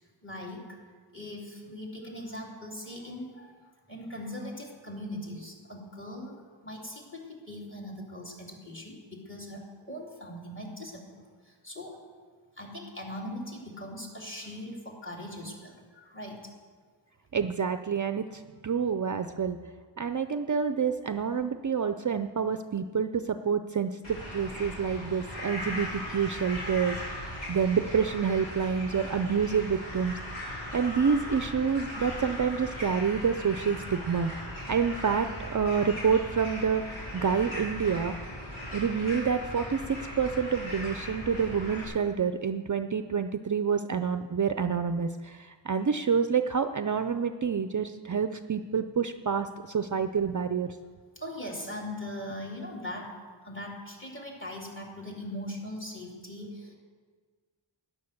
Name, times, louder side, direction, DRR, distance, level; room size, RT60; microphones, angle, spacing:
voice 1, 0.2-0.8 1.1-3.6 3.9-12.0 12.6-16.5 51.1-53.2 53.4-56.8, left 1 dB, 25° left, -1 dB, 3.3 m, -40 dB
voice 2, 17.3-19.6 20.0-30.2 30.7-34.3 34.7-38.1 38.7-50.8, right 6 dB, 40° right, 9 dB, 0.5 m, -28 dB
sound 1, 24.0-41.8, left 1 dB, 90° left, 4.6 m, -38 dB
12.5 x 9.9 x 6.7 m, 1.5 s
wide cardioid pair, 65°, 46 cm